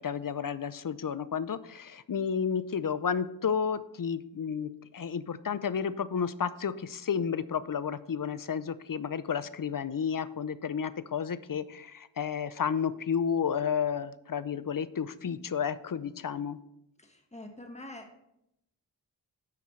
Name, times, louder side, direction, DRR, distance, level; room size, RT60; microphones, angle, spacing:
voice 1, 0.0-16.6, left 7 dB, 50° left, 15 dB, 0.6 m, -32 dB
voice 2, 17.0-18.2, left 1 dB, 15° left, 4 dB, 1.4 m, -45 dB
11.5 x 7.7 x 3.2 m, 0.81 s
wide cardioid pair, 75°, 44 cm